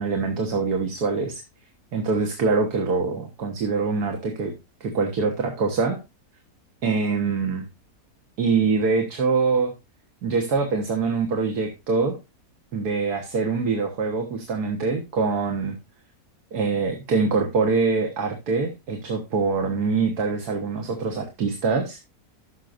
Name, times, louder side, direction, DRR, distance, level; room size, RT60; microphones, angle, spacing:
voice 1, 0.0-1.4 1.9-4.5 4.8-6.0 6.8-7.7 8.4-9.7 10.2-12.2 12.7-15.8 16.5-22.0, right 4 dB, 75° right, 4 dB, 1.8 m, -24 dB
14.5 x 6.5 x 2.5 m, 0.23 s
omnidirectional pair, 1.7 m